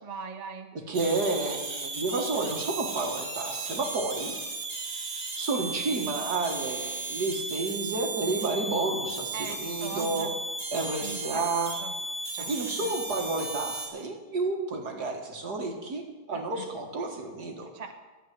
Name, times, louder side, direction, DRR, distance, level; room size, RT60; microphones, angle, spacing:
voice 1, 0.0-0.7 9.3-10.3 11.0-11.4 11.8-11.9 12.3-13.0 16.3-16.7 17.7-17.9, right 4 dB, 30° right, 5 dB, 0.8 m, -40 dB
voice 2, 0.9-4.4 5.4-10.3 10.7-11.7 12.3-17.7, right 3 dB, 55° right, 2 dB, 2.3 m, -31 dB
sound 1, 0.9-13.9, right 3 dB, 75° right, 2.9 m, -35 dB
12.0 x 8.1 x 9.6 m, 1.2 s
omnidirectional pair, 2.1 m